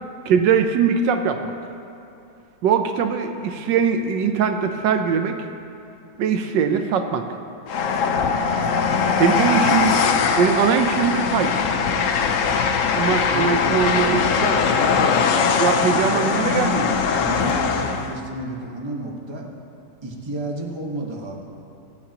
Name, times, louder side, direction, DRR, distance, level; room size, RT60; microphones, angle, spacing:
voice 1, 0.3-1.4 2.6-5.4 6.2-7.3 9.2-9.9 10.4-11.6 13.0-14.6 15.6-16.9, right 6 dB, 80° right, 6 dB, 1.3 m, -21 dB
Train, 7.7-18.2, left 5 dB, 65° left, 0.8 m, -21 dB
voice 2, 8.7-9.2 13.2-14.3 14.9-15.2 15.7-19.5 20.0-21.4, right 2 dB, 15° right, -1 dB, 1.1 m, -32 dB
25.0 x 8.5 x 2.9 m, 2.6 s
omnidirectional pair, 1.9 m